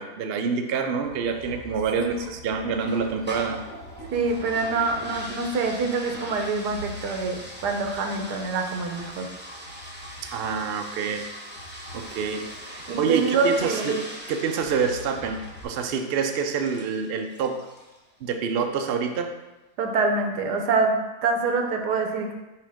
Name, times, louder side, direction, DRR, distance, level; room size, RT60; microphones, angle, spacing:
voice 1, 0.0-3.6 10.2-11.2 11.9-12.5 12.7-14.0 14.3-17.6 18.2-19.3, right 5 dB, 70° right, 5 dB, 0.5 m, -27 dB
sound 1, 1.0-11.2 11.6-13.4 14.6-15.6, equal, 55° left, 1.1 m, -45 dB
sound 2, 2.8-18.0, equal, 10° right, 1.0 m, -41 dB
voice 2, 4.1-9.3 12.9-14.0 19.8-22.3, right 4 dB, 85° right, 4 dB, 1.4 m, -25 dB
5.6 x 5.0 x 3.5 m, 1.0 s
omnidirectional pair, 1.7 m